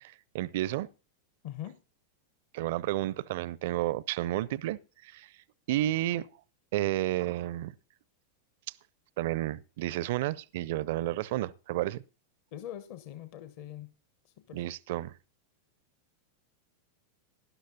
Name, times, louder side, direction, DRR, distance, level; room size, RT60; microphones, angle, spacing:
voice 1, 0.0-0.9 2.5-5.3 5.7-6.3 6.7-7.7 9.2-12.0 14.5-15.1, right 15 dB, 50° right, 0.6 m, -31 dB
voice 2, 1.4-1.8 12.5-13.9 14.2-14.6, left 12 dB, 45° left, 1.2 m, -42 dB
19.0 x 11.5 x 2.8 m
figure-of-eight pair, 90°, 0 cm